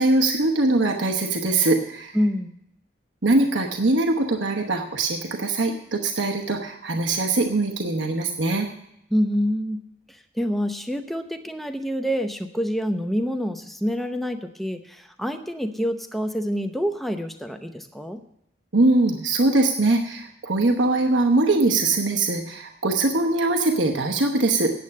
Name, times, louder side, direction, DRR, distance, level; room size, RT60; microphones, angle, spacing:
voice 1, 0.0-2.2 3.2-8.7 18.7-24.7, right 2 dB, 80° right, 3 dB, 1.1 m, -22 dB
voice 2, 2.1-2.5 9.1-9.8 10.4-18.2, equal, ahead, 6 dB, 0.7 m, -26 dB
9.3 x 7.9 x 8.5 m, 0.77 s
head